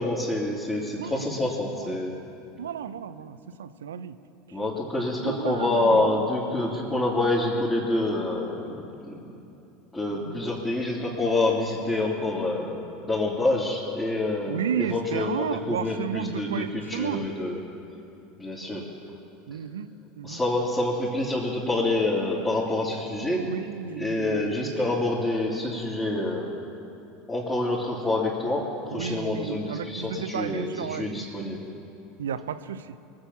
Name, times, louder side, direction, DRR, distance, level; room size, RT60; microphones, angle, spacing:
voice 1, 0.0-2.2 4.5-9.1 9.9-17.6 18.4-18.9 20.2-23.5 24.0-26.5 27.3-31.6, left 2 dB, 15° left, -7 dB, 3.3 m, -27 dB
voice 2, 1.0-1.3 1.7-2.0 2.6-4.2 4.5-4.6 5.2-6.3 10.1-10.4 14.5-17.2 19.5-19.9 20.2-20.4 23.2-24.7 28.9-31.1 32.2-33.0, right 7 dB, 85° right, 12 dB, 0.6 m, -33 dB
23.5 x 7.8 x 7.2 m, 2.8 s
hypercardioid pair, 85°, 0 cm